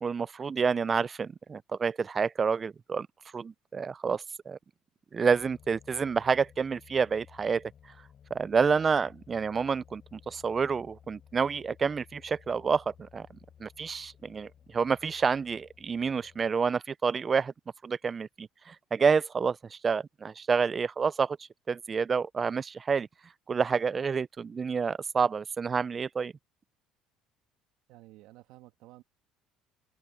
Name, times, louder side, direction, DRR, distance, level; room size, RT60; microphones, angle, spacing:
voice 1, 0.0-3.1 3.3-4.6 5.1-7.7 8.3-13.3 13.6-17.5 17.8-21.4 21.7-23.1 23.5-26.3, right 5 dB, 35° right, 0.5 m, -28 dB
sound 1, 5.3-16.6, left 9 dB, 50° left, 7.9 m, -57 dB
voice 2, 27.9-29.0, right 18 dB, 70° right, 2.2 m, -53 dB
open air
hypercardioid pair, 70°, 0 cm